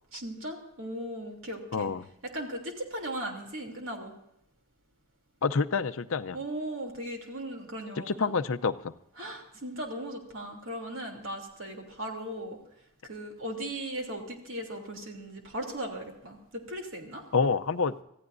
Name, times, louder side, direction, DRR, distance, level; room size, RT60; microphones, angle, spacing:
voice 1, 0.1-1.9 2.3-4.2 6.3-8.3 9.2-12.6 13.0-17.2, right 1 dB, 60° right, 2 dB, 3.0 m, -37 dB
voice 2, 1.7-2.0 5.4-6.4 8.0-8.9 17.3-17.9, left 4 dB, 65° left, 12 dB, 0.6 m, -27 dB
25.5 x 15.0 x 2.6 m, 0.80 s
head